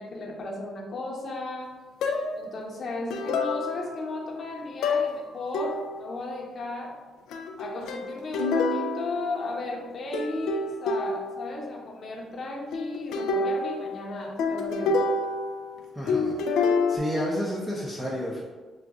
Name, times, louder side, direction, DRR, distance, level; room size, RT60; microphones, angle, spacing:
voice 1, 0.0-1.7 2.3-7.0 7.6-15.2, left 2 dB, 50° left, -1 dB, 0.9 m, -35 dB
sound 1, 2.0-2.5 3.1-4.1 4.8-5.2 5.5-6.1 7.3-9.9 10.1-11.5 12.7-15.8 16.1-17.0, left 3 dB, 85° left, 0.4 m, -28 dB
voice 2, 15.9-16.4 16.9-18.4, equal, 5° right, -6 dB, 0.7 m, -30 dB
6.3 x 2.5 x 2.4 m, 1.3 s
cardioid pair, 90°, 0 cm